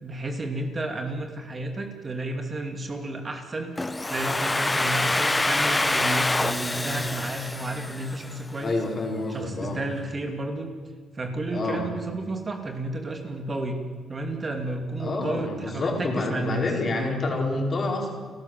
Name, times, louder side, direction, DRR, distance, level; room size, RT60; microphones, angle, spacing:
voice 1, 0.0-3.7 4.1-8.8 9.3-10.7 11.1-13.8 14.1-17.2, right 2 dB, 30° right, 5 dB, 2.6 m, -32 dB
Domestic sounds home sounds, 3.8-8.5, left 2 dB, 15° left, 0.8 m, -26 dB
voice 2, 8.6-9.8 11.5-11.8 15.0-18.1, left 2 dB, 40° left, 1 dB, 4.8 m, -28 dB
29.5 x 13.5 x 7.5 m, 1.5 s
cardioid pair, 90°, 0 cm